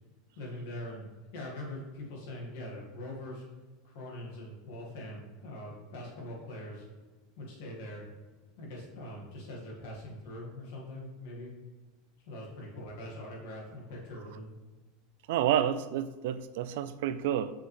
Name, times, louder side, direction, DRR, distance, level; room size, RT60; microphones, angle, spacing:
voice 1, 0.4-1.1 1.3-3.4 3.8-6.9 7.4-8.0 8.6-11.5 12.3-14.5, left 1 dB, 60° left, -2 dB, 1.9 m, -42 dB
voice 2, 15.3-17.5, right 10 dB, 65° right, 12 dB, 0.3 m, -29 dB
5.9 x 5.6 x 3.3 m, 1.2 s
supercardioid pair, 170°, 0 cm